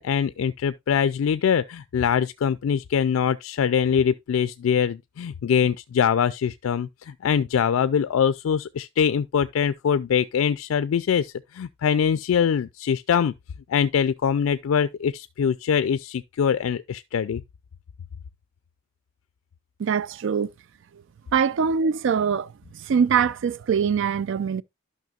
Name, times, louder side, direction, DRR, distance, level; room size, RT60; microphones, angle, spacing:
voice 1, 0.0-13.3 13.7-17.4, left 7 dB, 85° left, 0.3 m, -23 dB
voice 2, 19.8-20.5 21.3-22.5 22.7-24.6, right 6 dB, 65° right, 0.4 m, -23 dB
12.0 x 5.7 x 2.3 m
head